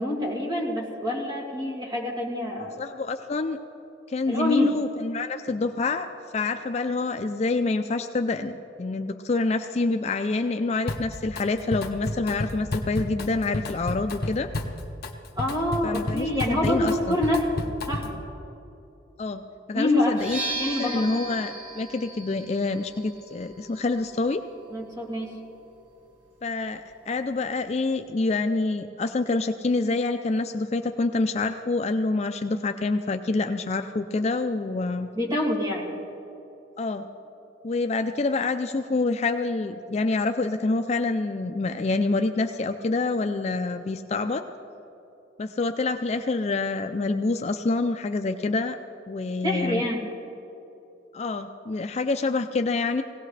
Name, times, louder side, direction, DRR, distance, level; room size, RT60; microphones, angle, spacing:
voice 1, 0.0-2.8 4.3-4.8 15.4-18.2 19.7-20.2 20.6-21.1 24.7-25.4 35.1-35.9 49.4-50.1, left 1 dB, 20° right, -3 dB, 2.4 m, -26 dB
voice 2, 2.8-3.6 4.1-6.1 6.3-14.5 15.8-17.2 19.2-19.4 19.7-20.4 20.8-24.4 26.4-35.1 36.8-37.1 37.6-44.4 45.4-48.8 49.1-49.9 51.1-53.0, left 3 dB, 35° left, 7 dB, 0.4 m, -27 dB
Drum kit, 10.9-11.4 11.7-18.2, left 1 dB, 55° left, 1.1 m, -31 dB
sound 1, 20.1-27.8, right 2 dB, 90° right, 2.4 m, -39 dB
20.5 x 17.0 x 3.3 m, 2.9 s
head